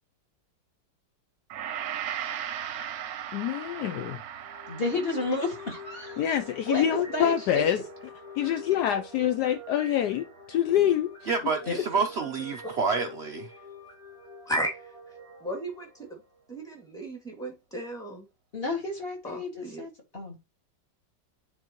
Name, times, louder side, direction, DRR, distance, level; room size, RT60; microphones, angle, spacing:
Gong, 1.5-9.9 10.3-10.4, right 10 dB, 65° right, 1.0 m, -39 dB
voice 1, 3.3-4.2 6.2-7.8 8.4-11.1, left 11 dB, 75° left, 1.1 m, -26 dB
sound 1, 4.4-16.5, equal, 45° left, 3.1 m, -46 dB
voice 2, 4.7-6.2 6.7-7.6 11.7-11.8 18.5-20.4, left 2 dB, 30° left, 2.3 m, -31 dB
voice 3, 11.3-13.5, right 4 dB, 85° right, 0.5 m, -28 dB
voice 4, 14.5-14.8 15.4-16.1 16.5-18.2 19.2-19.8, right 1 dB, ahead, 2.0 m, -34 dB
9.7 x 4.3 x 3.0 m
omnidirectional pair, 2.0 m